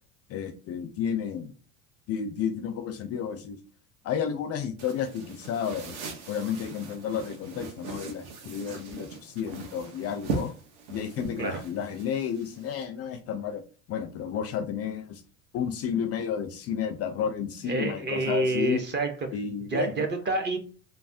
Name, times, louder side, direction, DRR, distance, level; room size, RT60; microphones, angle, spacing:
voice 1, 0.3-1.5 2.1-3.6 4.0-6.0 6.3-10.5 10.9-13.6 13.9-15.2 15.5-18.8 19.3-19.9, left 8 dB, 40° left, 8 dB, 0.4 m, -31 dB
sound 1, 4.8-12.8, right 4 dB, 65° right, 0.9 m, -39 dB
voice 2, 17.7-19.3 19.7-20.6, right 2 dB, 25° right, 6 dB, 0.5 m, -28 dB
3.2 x 2.1 x 2.6 m, 0.38 s
supercardioid pair, 115°, 41 cm